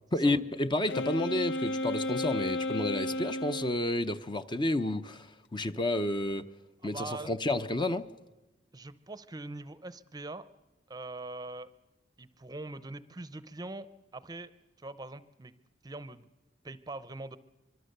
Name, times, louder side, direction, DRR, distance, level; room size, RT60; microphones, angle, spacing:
voice 1, 0.1-5.3 5.5-6.5 6.8-8.1, left 1 dB, 25° left, 10 dB, 0.7 m, -30 dB
Wind instrument woodwind instrument, 0.9-3.8, left 1 dB, 75° left, 0.8 m, -33 dB
voice 2, 6.8-7.3 8.7-10.5 10.9-11.7 12.2-14.5 14.8-15.5 15.8-16.3 16.6-17.4, right 2 dB, 20° right, 15 dB, 0.7 m, -42 dB
24.5 x 22.5 x 6.7 m, 1.1 s
head